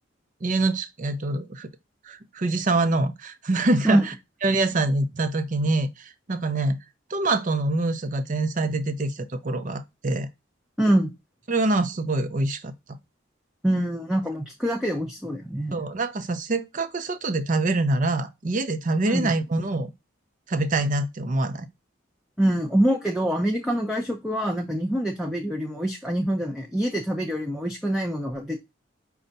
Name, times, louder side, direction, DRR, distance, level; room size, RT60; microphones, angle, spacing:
voice 1, 0.4-1.7 2.0-4.1 4.4-6.8 7.1-10.3 11.5-13.0 15.7-19.9 20.5-21.7, right 2 dB, 40° right, 0.6 m, -25 dB
voice 2, 10.8-11.1 13.6-15.8 19.1-19.3 22.4-28.6, right 1 dB, ahead, 0.6 m, -25 dB
5.3 x 2.3 x 3.9 m
head